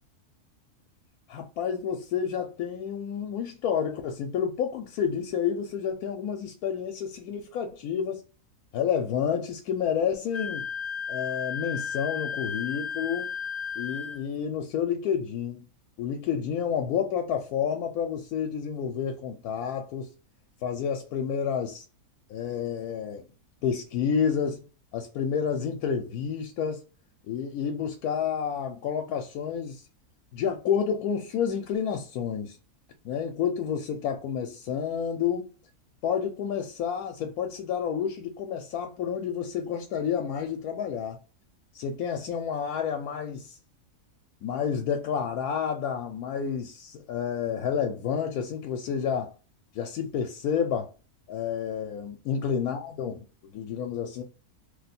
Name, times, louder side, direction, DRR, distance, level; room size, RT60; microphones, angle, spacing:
voice 1, 1.3-8.2 8.7-10.7 11.1-13.3 13.8-15.7 16.0-20.1 20.6-21.8 22.3-23.2 23.6-24.6 24.9-26.8 27.3-29.8 30.3-32.6 33.0-35.5 36.0-41.2 41.7-43.6 44.4-49.3 49.7-50.9 51.3-53.2 53.5-54.2, left 7 dB, 75° left, 1.1 m, -29 dB
Wind instrument woodwind instrument, 10.3-14.2, left 6 dB, 55° left, 0.6 m, -34 dB
2.6 x 2.2 x 4.1 m
omnidirectional pair, 1.6 m